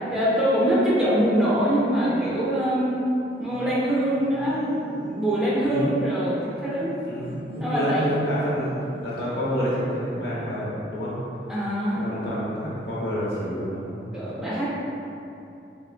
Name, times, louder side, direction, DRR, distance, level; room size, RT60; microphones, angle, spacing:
voice 1, 0.1-3.0 3.4-6.9 7.6-8.0 11.5-12.2 14.1-14.7, equal, 5° right, -9 dB, 0.4 m, -24 dB
sound 1, 3.3-9.1, right 1 dB, 70° right, 0.6 m, -41 dB
voice 2, 5.6-6.1 7.1-8.7 9.0-11.1 11.9-14.1, equal, 65° left, -8 dB, 0.9 m, -28 dB
3.6 x 3.0 x 2.2 m, 2.8 s
head